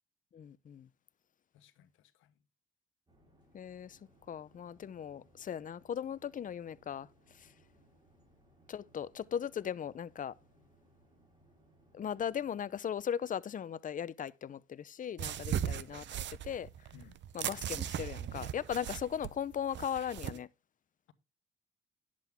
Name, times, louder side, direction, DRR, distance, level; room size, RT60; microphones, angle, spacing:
voice 1, 0.3-0.9 3.5-4.0 4.3-7.1 7.4-7.5 8.7-10.3 11.9-16.7 17.3-20.5, left 8 dB, 40° left, 0.6 m, -38 dB
voice 2, 1.5-2.3 15.5-15.7 16.9-17.2, left 10 dB, 85° left, 1.1 m, -55 dB
sound 1, 3.1-12.6, equal, 20° right, 5.3 m, -66 dB
sound 2, 15.2-20.4, right 10 dB, 65° right, 0.7 m, -38 dB
11.0 x 7.5 x 3.5 m
cardioid pair, 90°, 20 cm